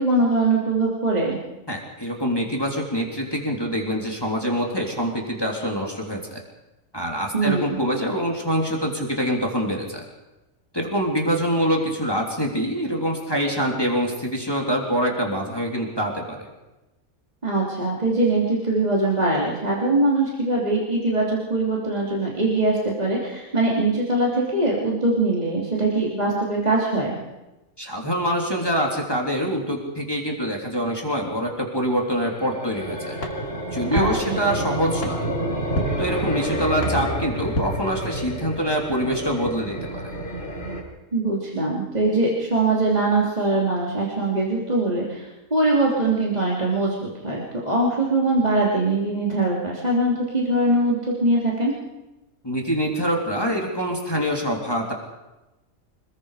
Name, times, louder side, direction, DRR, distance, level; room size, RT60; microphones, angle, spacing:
voice 1, 0.0-1.4 7.3-7.8 17.4-27.1 33.9-34.4 41.1-51.7, right 2 dB, 30° right, -4 dB, 3.3 m, -22 dB
voice 2, 1.7-6.4 6.9-10.0 10.7-16.5 27.8-33.2 33.7-35.3 36.0-40.1 52.4-54.9, equal, 15° left, -1 dB, 3.3 m, -25 dB
sound 1, 32.0-40.8, right 1 dB, 45° left, 4.8 m, -29 dB
sound 2, 33.2-38.5, left 1 dB, 65° left, 3.0 m, -34 dB
26.5 x 21.0 x 5.0 m, 1.0 s
omnidirectional pair, 1.4 m